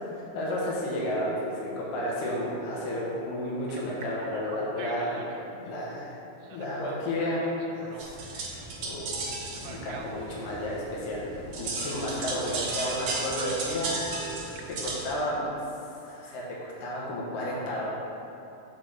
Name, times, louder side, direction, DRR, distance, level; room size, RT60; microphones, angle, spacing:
voice 1, 0.1-5.3 5.5-6.2 6.5-8.1 8.4-9.2 9.6-14.2 14.8-15.6 16.0-17.9, left 1 dB, 75° left, -5 dB, 2.7 m, -32 dB
Telephone, 0.9-3.1 3.7-5.4 6.4-8.7 9.5-10.8 12.6-12.8 13.1-13.9 14.4-14.9, right 4 dB, 80° right, 2.3 m, -45 dB
sound 1, 8.0-15.1, right 3 dB, 60° right, 2.3 m, -35 dB
6.5 x 4.8 x 6.4 m, 2.8 s
omnidirectional pair, 4.0 m